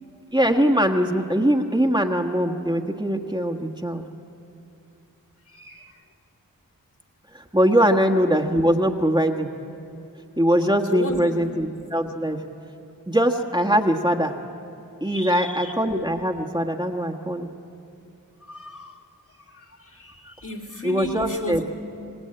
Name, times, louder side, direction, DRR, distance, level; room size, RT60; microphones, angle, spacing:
voice 1, 0.3-4.0 7.3-9.5 10.4-12.4 13.1-14.5 15.0-17.5 20.2-20.3 20.8-21.6, equal, 10° right, 1 dB, 1.4 m, -22 dB
voice 2, 5.5-6.0 7.7-7.9 10.9-11.5 15.0-15.7 18.4-19.0 19.5-21.6, equal, 55° left, 3 dB, 2.9 m, -34 dB
26.5 x 18.5 x 8.9 m, 2.6 s
wide cardioid pair, 45°, 35 cm